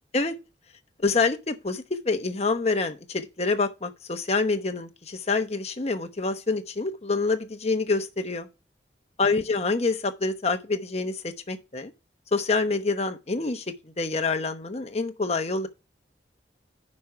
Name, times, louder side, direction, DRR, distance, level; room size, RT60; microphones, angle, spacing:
voice 1, 1.0-8.5 9.2-11.9 12.3-13.6 14.0-15.7, left 3 dB, 35° left, 1.0 m, -26 dB
9.4 x 5.4 x 4.8 m
head